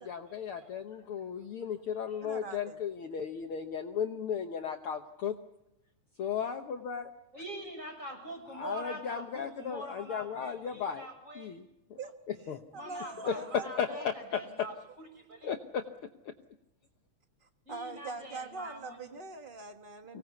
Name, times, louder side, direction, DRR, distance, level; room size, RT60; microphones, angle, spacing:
voice 1, 0.0-5.4 6.2-7.1 8.5-11.1 11.4-12.0 12.5-12.6 13.2-14.7 15.4-15.8 16.3-16.4 20.1-20.2, left 7 dB, 60° left, 5 dB, 1.7 m, -35 dB
voice 2, 2.2-2.8 12.0-12.1 12.7-13.5 13.9-14.0 17.4-20.2, right 3 dB, 75° right, 6 dB, 0.4 m, -43 dB
voice 3, 7.3-11.5 12.7-15.5 17.7-19.1, equal, 25° right, 2 dB, 7.6 m, -44 dB
25.0 x 18.5 x 8.2 m, 0.89 s
omnidirectional pair, 3.4 m